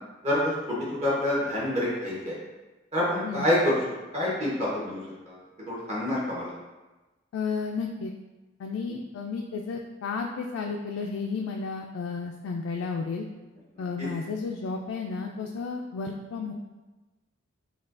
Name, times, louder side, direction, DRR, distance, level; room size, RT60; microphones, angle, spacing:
voice 1, 0.2-2.3 2.9-3.8 4.1-5.0 5.2-5.4 5.7-6.5 14.0-14.1, left 1 dB, 35° right, -7 dB, 1.0 m, -27 dB
voice 2, 7.3-8.1 8.6-13.3 13.8-16.5, left 4 dB, 80° left, 1 dB, 0.3 m, -32 dB
5.3 x 2.3 x 2.5 m, 1.1 s
head